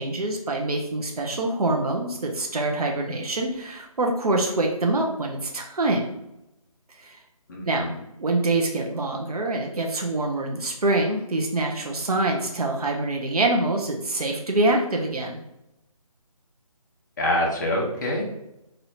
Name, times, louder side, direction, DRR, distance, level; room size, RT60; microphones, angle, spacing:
voice 1, 0.0-6.1 7.0-7.2 7.6-7.9 8.2-15.4, right 2 dB, 80° right, 1 dB, 0.7 m, -25 dB
voice 2, 7.5-8.0 17.2-18.2, left 1 dB, 30° left, -2 dB, 0.8 m, -25 dB
4.3 x 2.7 x 2.7 m, 0.88 s
figure-of-eight pair, 155°, 19 cm